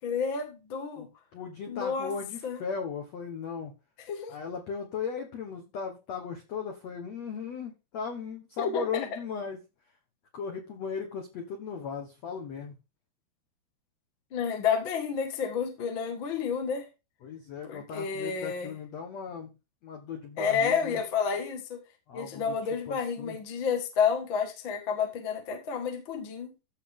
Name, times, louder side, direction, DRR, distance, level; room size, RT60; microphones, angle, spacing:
voice 1, 0.0-1.1 1.7-2.1 2.4-2.6 4.1-4.3 8.6-9.1 14.3-16.8 17.6-18.7 20.4-21.8 22.1-26.5, left 6 dB, 50° left, 4 dB, 1.5 m, -30 dB
voice 2, 1.3-3.7 4.3-9.6 10.3-12.8 17.2-19.5 19.8-21.0 22.1-22.5 22.9-23.4, left 6 dB, 65° left, 4 dB, 1.7 m, -37 dB
14.5 x 5.5 x 3.6 m, 0.27 s
omnidirectional pair, 5.0 m